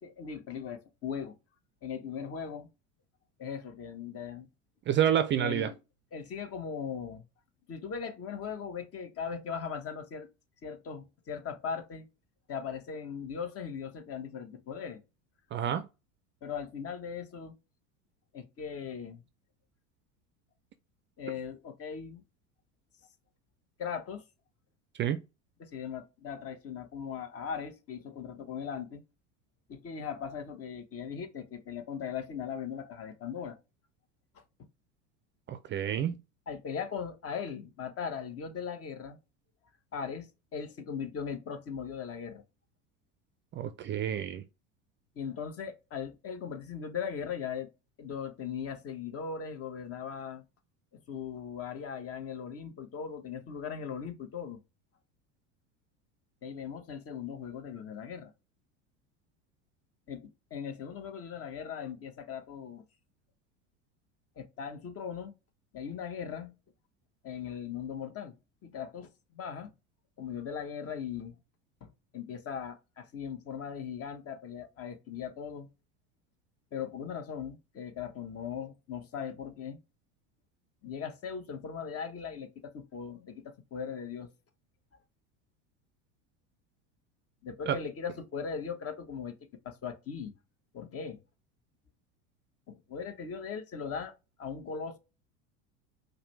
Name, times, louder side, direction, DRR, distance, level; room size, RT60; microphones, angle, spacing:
voice 1, 0.0-1.4 1.8-2.7 3.4-4.5 5.4-5.8 6.1-7.3 7.7-10.3 10.6-12.1 12.5-15.0 16.4-17.5 18.3-19.2 21.2-22.2 23.8-24.2 25.6-29.0 29.7-33.6 36.5-39.2 39.9-42.4 45.2-47.7 48.0-50.4 50.9-54.6 56.4-58.3 60.1-62.8 64.4-65.3 65.7-66.5 67.2-68.4 68.6-69.7 70.2-71.4 71.8-71.9 72.1-75.7 76.7-79.8 80.8-84.3 87.4-89.4 89.6-90.3 90.7-91.2 92.7-94.1 94.4-95.0, left 7 dB, 35° left, 1.0 m, -39 dB
voice 2, 4.9-5.7 15.5-15.9 25.0-25.2 35.5-36.2 43.5-44.4 87.7-87.8, right 10 dB, 30° right, 0.4 m, -28 dB
4.8 x 2.2 x 3.2 m
hypercardioid pair, 85°, 39 cm